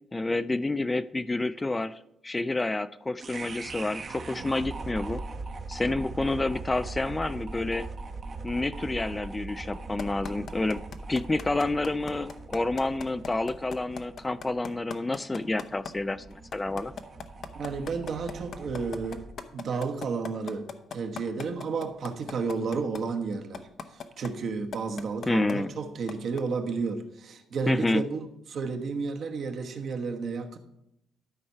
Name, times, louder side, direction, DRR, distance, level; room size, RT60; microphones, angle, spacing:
voice 1, 0.1-5.2 5.7-7.9 8.4-10.8 11.1-16.9 25.3-25.7 27.7-28.0, left 2 dB, 20° left, 0.3 m, -29 dB
sound 1, 3.2-19.4, right 3 dB, 40° right, 0.9 m, -41 dB
sound 2, 10.0-15.9 16.3-23.0 23.5-24.3 24.7-25.5 26.1-26.4, left 6 dB, 60° left, 0.8 m, -38 dB
voice 2, 17.5-19.3 19.5-23.7 24.2-30.6, right 4 dB, 60° right, 1.1 m, -32 dB
12.5 x 4.4 x 5.6 m
cardioid pair, 90°, 0 cm